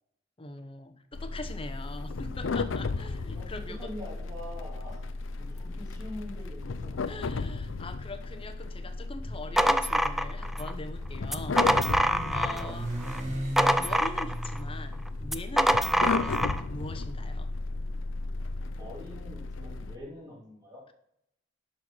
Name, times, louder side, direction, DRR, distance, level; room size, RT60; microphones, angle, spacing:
voice 1, 0.4-3.9 7.1-11.6 12.3-12.9 13.8-17.5, left 2 dB, 30° left, 8 dB, 0.9 m, -42 dB
sound 1, 1.1-20.0, left 3 dB, 85° left, 0.6 m, -35 dB
voice 2, 3.3-5.0 5.4-7.4 12.4-12.8 18.8-20.8, left 1 dB, 20° right, -6 dB, 4.4 m, -44 dB
sound 2, 9.2-10.7 11.2-12.7 13.0-14.6 15.2-16.6, equal, ahead, 0.4 m, -25 dB
Motorcycle, 9.7-17.8, right 1 dB, 40° right, 1.8 m, -39 dB
11.0 x 4.5 x 6.1 m, 0.74 s
head